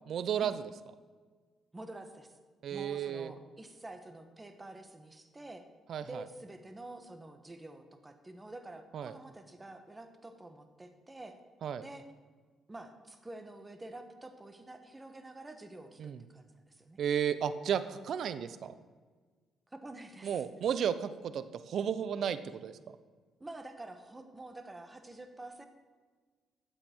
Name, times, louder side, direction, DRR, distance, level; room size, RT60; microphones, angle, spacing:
voice 1, 0.1-0.6 2.6-3.3 5.9-6.2 8.9-9.1 11.6-11.8 16.0-16.2 17.0-18.7 20.2-22.7, right 8 dB, 65° right, 13 dB, 0.6 m, -33 dB
voice 2, 1.7-2.4 2.7-5.7 6.0-11.4 11.8-12.1 12.7-17.0 19.7-20.4 23.4-25.7, right 2 dB, 20° right, 7 dB, 1.3 m, -48 dB
13.0 x 7.6 x 4.5 m, 1.5 s
cardioid pair, 90°, 0 cm